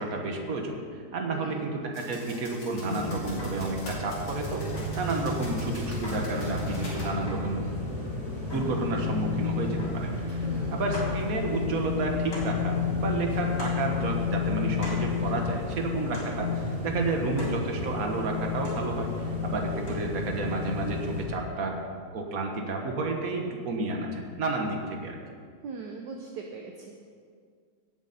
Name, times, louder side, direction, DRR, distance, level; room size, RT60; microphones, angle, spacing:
voice 1, 0.0-4.6 5.0-10.5 10.7-21.8 22.1-25.2, right 3 dB, 50° right, 2 dB, 1.7 m, -31 dB
voice 2, 1.3-1.7 10.4-10.9 25.6-26.9, right 4 dB, 65° right, 2 dB, 1.4 m, -40 dB
sound 1, 1.9-7.1, left 1 dB, 65° left, 3.6 m, -45 dB
sound 2, 2.8-21.2, left 4 dB, 25° right, 3.8 m, -31 dB
sound 3, 3.4-3.7 4.7-5.1 6.0-6.4 7.3-7.6 8.5-8.9 9.8-10.1 10.4-10.5 10.9-11.2 12.3-12.6 13.6-13.9 14.8-15.1 16.1-16.4 17.4-17.7 18.6-18.9 19.9-20.0, left 1 dB, 85° left, 4.5 m, -40 dB
17.5 x 8.1 x 4.2 m, 2.1 s
omnidirectional pair, 2.2 m